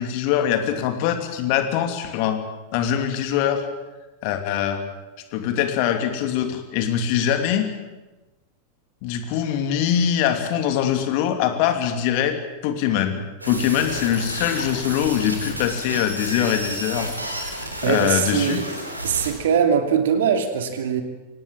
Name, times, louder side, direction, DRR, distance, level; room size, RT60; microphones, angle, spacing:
voice 1, 0.0-2.4 2.7-3.6 4.2-4.8 5.3-7.7 9.0-12.4 12.6-17.1 17.4-18.6, left 9 dB, 45° left, 7 dB, 2.8 m, -23 dB
sound 1, 13.4-19.3, right 1 dB, 85° right, 4.1 m, -31 dB
voice 2, 17.8-18.8 19.0-21.0, right 7 dB, 60° right, 7 dB, 2.6 m, -21 dB
25.0 x 18.5 x 7.6 m, 1.1 s
figure-of-eight pair, 90°, 0 cm